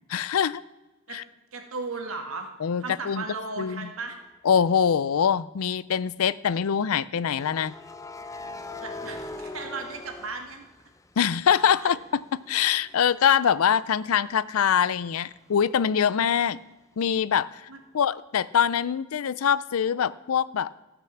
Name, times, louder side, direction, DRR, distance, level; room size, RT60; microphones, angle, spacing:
voice 1, 0.1-0.6 1.1-1.2 2.6-3.2 3.6-3.9 4.4-7.7 11.2-12.0 12.5-16.6 17.0-17.7 17.9-20.7, left 8 dB, 80° left, 18 dB, 0.4 m, -24 dB
voice 2, 1.5-2.5 2.8-4.2 8.8-10.6 11.8-11.9 17.7-17.8, right 3 dB, 75° right, 4 dB, 1.9 m, -36 dB
sound 1, 4.0-4.3 7.3-11.2 11.6-15.2, left 2 dB, 15° left, 0.5 m, -42 dB
14.5 x 6.1 x 7.2 m, 1.1 s
head